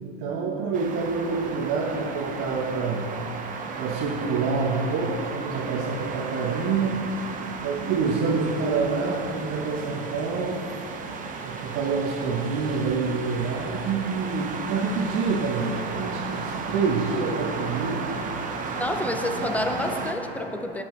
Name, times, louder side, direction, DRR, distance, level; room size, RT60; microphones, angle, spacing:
voice 1, 0.0-3.0 3.8-7.0 7.6-10.6 11.4-18.4, right 4 dB, 45° right, -3 dB, 1.0 m, -27 dB
sound 1, 0.7-20.1, right 4 dB, 25° right, 0.8 m, -34 dB
voice 2, 18.7-20.8, left 1 dB, 5° left, 6 dB, 0.5 m, -28 dB
11.0 x 8.8 x 3.2 m, 3.0 s
hypercardioid pair, 110°, 31 cm